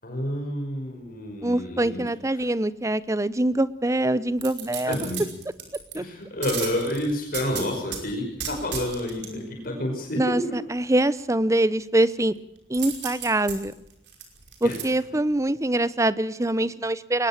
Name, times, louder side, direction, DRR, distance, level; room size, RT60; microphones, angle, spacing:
voice 1, 0.0-2.0 2.3-2.4 4.9-5.2 5.9-10.5 14.6-14.8, left 1 dB, 55° left, 2 dB, 5.5 m, -29 dB
voice 2, 1.4-5.0 5.9-6.0 10.2-12.3 12.7-13.7 14.6-17.3, right 1 dB, 15° right, 16 dB, 0.8 m, -24 dB
sound 1, 4.4-6.0 6.4-8.0 8.4-9.3 12.7-14.8 15.3-15.4, right 8 dB, 85° right, 5.4 m, -34 dB
22.0 x 19.5 x 7.5 m, 0.78 s
head